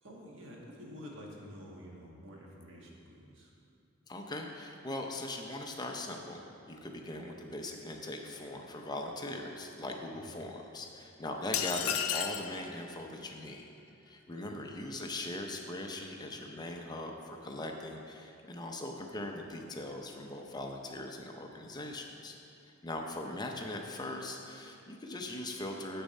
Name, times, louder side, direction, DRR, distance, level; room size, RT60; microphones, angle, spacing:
voice 1, 0.0-3.5 10.1-10.4 14.3-14.5, equal, 65° right, -2 dB, 1.6 m, -49 dB
voice 2, 4.1-6.4 6.7-13.7 14.0-22.4 22.6-26.0, left 1 dB, 20° left, 2 dB, 0.6 m, -40 dB
sound 1, 11.5-12.5, left 9 dB, 80° left, 0.5 m, -32 dB
8.2 x 6.8 x 5.3 m, 2.7 s
head